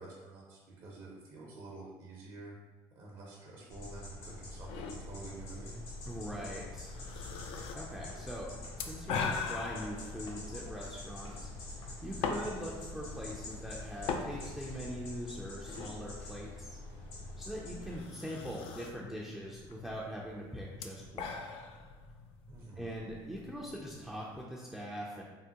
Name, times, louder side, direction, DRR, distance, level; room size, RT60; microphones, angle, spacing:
voice 1, 0.0-2.6 2.9-5.8 22.5-22.9, right 3 dB, 55° right, -4 dB, 0.7 m, -48 dB
sound 1, 3.7-18.0, left 2 dB, 90° left, 0.8 m, -46 dB
sound 2, 4.7-24.4, left 5 dB, 65° left, 0.4 m, -43 dB
voice 2, 6.1-7.0 7.7-11.3 12.0-16.8 17.4-21.4 22.8-25.2, equal, 5° right, -5 dB, 0.4 m, -42 dB
sound 3, 6.3-14.8, left 3 dB, 50° left, 0.8 m, -52 dB
3.5 x 2.1 x 2.8 m, 1.3 s
supercardioid pair, 105°, 10 cm